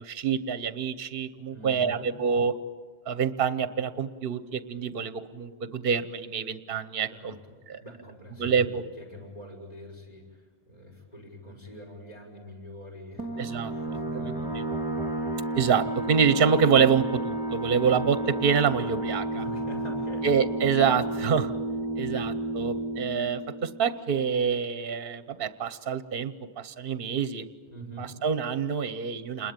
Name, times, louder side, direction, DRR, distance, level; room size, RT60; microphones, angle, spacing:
voice 1, 0.0-2.5 3.1-7.3 7.7-7.8 8.4-8.8 13.4-13.7 14.1-14.6 15.6-19.4 20.2-21.5 22.0-27.5 28.0-29.5, right 6 dB, 55° right, 12 dB, 1.1 m, -26 dB
voice 2, 1.5-2.1 7.1-15.1 19.3-20.3 22.1-22.4 27.7-28.2, equal, 35° left, 1 dB, 6.0 m, -45 dB
sound 1, 13.2-24.5, right 2 dB, 5° right, 2.8 m, -32 dB
28.0 x 21.0 x 9.0 m, 1.5 s
omnidirectional pair, 1.1 m